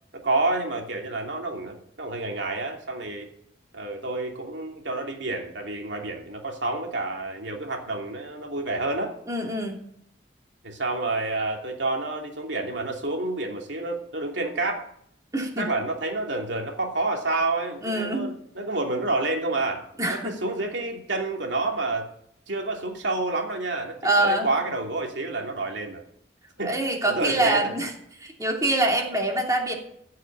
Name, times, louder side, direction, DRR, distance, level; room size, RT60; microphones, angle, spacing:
voice 1, 0.1-3.3 3.7-9.1 10.6-14.9 15.6-22.1 22.5-26.0 26.6-26.8 27.0-27.7, right 2 dB, 75° right, 2 dB, 2.8 m, -29 dB
voice 2, 9.3-9.8 15.3-15.7 17.8-18.3 20.0-20.3 24.0-24.5 26.6-27.9 28.2-29.7, right 1 dB, 20° right, 0 dB, 2.9 m, -24 dB
15.0 x 6.6 x 9.0 m, 0.70 s
head